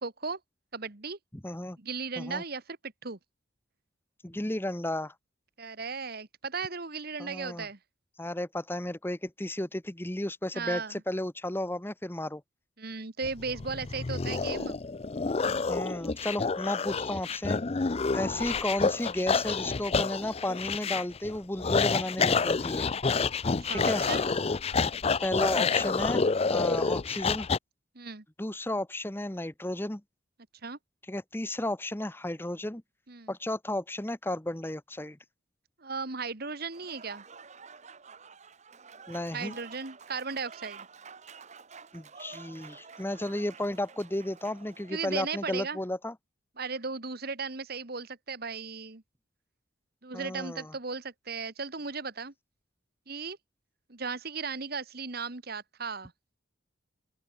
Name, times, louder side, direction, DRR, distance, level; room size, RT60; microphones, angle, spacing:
voice 1, 0.0-0.4 0.7-1.2 1.8-3.2 5.6-7.8 10.5-11.0 12.8-14.8 23.4-24.2 26.5-26.7 27.9-28.2 30.6-30.8 33.1-33.3 35.8-37.2 39.3-40.9 44.9-45.8 46.6-49.0 50.0-52.3 53.1-53.4 53.9-56.1, right 4 dB, 50° right, 1.6 m, -36 dB
voice 2, 1.4-1.8 2.2-2.4 4.2-5.1 7.2-7.7 8.2-12.4 15.7-17.6 18.1-22.9 23.7-24.1 25.2-26.2 26.5-27.5 28.4-30.0 31.1-32.8 33.3-35.2 39.1-39.6 41.9-46.1 50.1-50.7, left 1 dB, 10° left, 1.0 m, -33 dB
sound 1, 13.2-27.6, left 4 dB, 30° left, 0.5 m, -28 dB
Applause / Crowd, 36.6-45.4, right 5 dB, 35° right, 1.2 m, -50 dB
open air
head